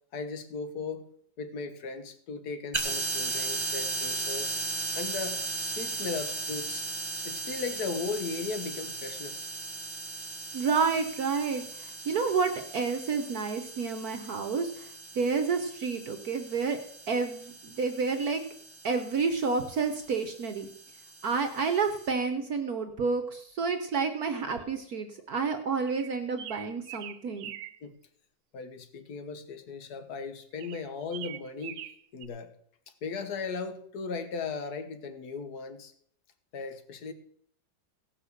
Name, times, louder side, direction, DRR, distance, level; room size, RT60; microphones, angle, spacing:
voice 1, 0.1-1.1 1.4-4.6 5.0-6.9 7.2-9.5 27.8-28.0 28.5-31.8 32.1-32.5 33.0-35.9 36.5-37.1, left 4 dB, 55° left, 9 dB, 1.7 m, -37 dB
sound 1, 2.7-22.1, right 3 dB, 20° right, 0.9 m, -37 dB
voice 2, 10.5-16.8 17.1-18.4 18.8-20.7 21.2-27.5, right 5 dB, 55° right, 7 dB, 1.3 m, -30 dB
sound 2, 25.9-27.8 30.6-32.3, right 12 dB, 85° right, 1.5 m, -43 dB
17.5 x 6.0 x 6.6 m, 0.65 s
omnidirectional pair, 2.1 m